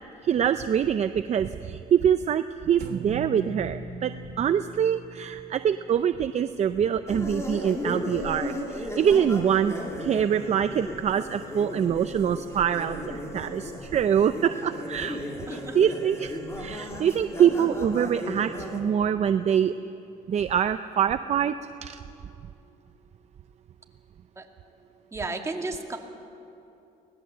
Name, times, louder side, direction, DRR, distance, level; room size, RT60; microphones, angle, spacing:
voice 1, 0.2-4.1 4.4-19.7 20.3-21.5 21.8-22.0, right 8 dB, 40° right, 10 dB, 0.6 m, -25 dB
sound 1, 2.8-7.0, right 3 dB, 65° right, 1.9 m, -41 dB
sound 2, 7.1-18.8, left 1 dB, 15° left, 3.5 m, -35 dB
voice 2, 15.5-15.9 24.4-24.5 25.1-26.0, right 3 dB, 15° right, 2 dB, 2.3 m, -33 dB
24.5 x 19.0 x 7.6 m, 2.8 s
cardioid pair, 110°, 17 cm